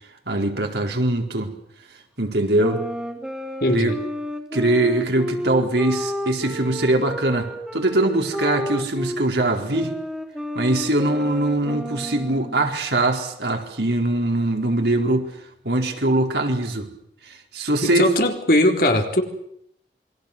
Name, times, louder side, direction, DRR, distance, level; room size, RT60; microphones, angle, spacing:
voice 1, 0.3-1.6 2.2-2.9 3.7-3.9 4.5-9.9 10.5-15.4 15.6-16.9 17.2-18.1, right 1 dB, 75° right, 3 dB, 4.5 m, -22 dB
sound 1, 2.6-9.3 9.7-12.7, equal, 5° right, 3.5 m, -31 dB
voice 2, 3.6-3.9 17.8-19.2, left 1 dB, 55° left, 4 dB, 4.0 m, -19 dB
27.5 x 23.0 x 6.9 m, 0.73 s
head